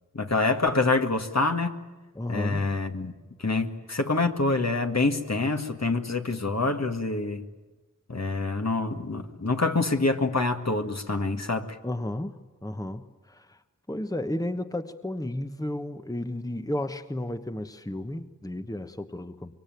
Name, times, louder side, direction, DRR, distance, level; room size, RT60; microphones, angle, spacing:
voice 1, 0.1-1.8 2.3-3.1 3.4-7.5 8.1-11.8, left 3 dB, 55° left, 5 dB, 1.9 m, -26 dB
voice 2, 2.1-2.8 11.8-13.6 13.9-19.6, left 1 dB, 10° left, 8 dB, 1.2 m, -33 dB
25.5 x 23.0 x 9.2 m, 1.2 s
wide cardioid pair, 40°, 32 cm